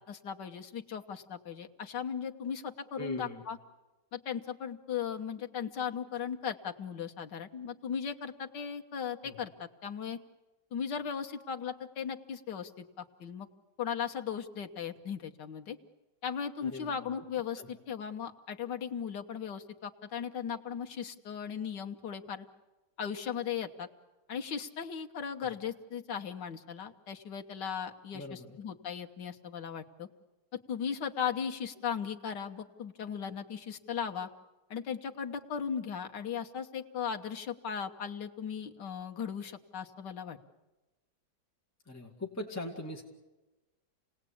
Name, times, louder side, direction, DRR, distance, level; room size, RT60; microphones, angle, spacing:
voice 1, 0.0-3.6 4.1-10.2 10.7-13.5 13.8-15.8 16.2-22.5 23.0-23.9 24.3-30.1 30.5-34.3 34.7-40.4, left 7 dB, 85° left, 4 dB, 1.9 m, -37 dB
voice 2, 3.0-3.4 9.2-9.4 16.6-17.1 17.6-17.7 28.1-28.6 41.9-43.0, left 1 dB, 10° left, 0 dB, 2.0 m, -41 dB
28.5 x 18.5 x 8.6 m, 1.1 s
omnidirectional pair, 1.8 m